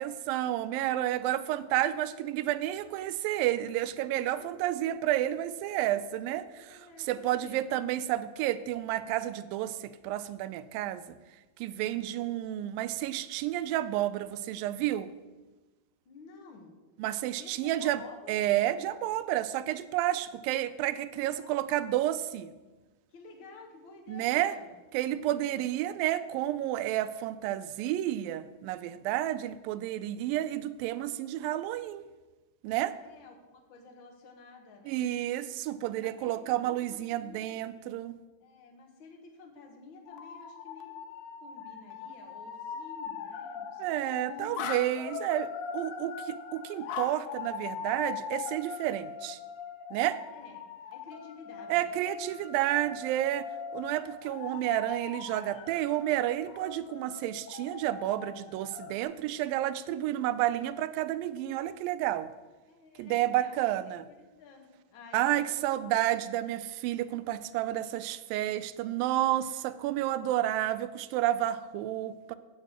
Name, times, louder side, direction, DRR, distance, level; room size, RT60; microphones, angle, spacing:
voice 1, 0.0-11.0 11.6-15.1 17.0-18.0 18.3-22.5 24.1-24.5 24.9-32.0 32.6-32.9 34.9-38.2 43.8-49.4 49.9-50.2 51.7-62.3 63.0-64.0 65.1-72.4, right 13 dB, 90° right, 13 dB, 2.3 m, -30 dB
voice 2, 6.5-7.8 11.8-12.1 16.0-16.8 17.4-18.5 20.1-20.2 21.1-21.7 23.1-24.7 25.6-26.0 32.9-35.1 36.0-37.5 38.4-41.0 41.4-44.6 50.3-50.6 50.9-52.0 52.8-53.0 62.7-66.0 69.4-69.5 70.2-70.4, left 4 dB, 50° left, 3 dB, 1.7 m, -52 dB
sound 1, 40.1-59.0, left 7 dB, 90° left, 2.7 m, -41 dB
8.8 x 6.5 x 7.9 m, 1.2 s
omnidirectional pair, 4.0 m